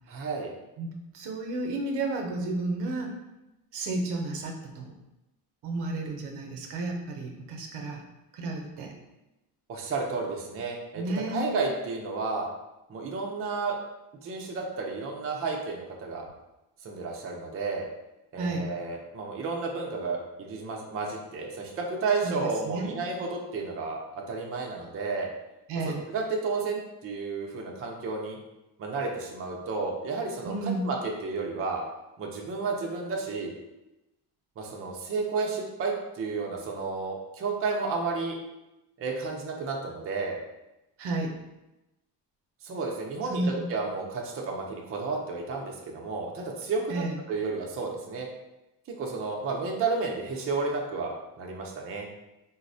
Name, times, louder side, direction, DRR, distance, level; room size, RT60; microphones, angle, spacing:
voice 1, 0.1-0.5 9.7-11.0 11.3-12.5 12.9-13.8 14.2-16.3 16.8-17.9 18.3-25.3 26.1-28.4 28.8-30.5 30.8-31.0 31.2-31.8 32.2-33.5 34.6-38.4 39.0-40.4 42.6-48.3 49.0-52.1, right 4 dB, 35° right, 0 dB, 0.5 m, -32 dB
voice 2, 0.8-3.1 3.7-4.9 5.6-8.0 8.3-8.9 11.0-11.5 18.4-18.7 22.2-22.4 22.6-23.0 25.7-26.0 30.4-30.9 41.0-41.4 43.3-43.6 46.9-47.2, right 2 dB, 75° right, 2 dB, 0.6 m, -32 dB
3.8 x 2.0 x 2.6 m, 0.96 s
cardioid pair, 125°, 40 cm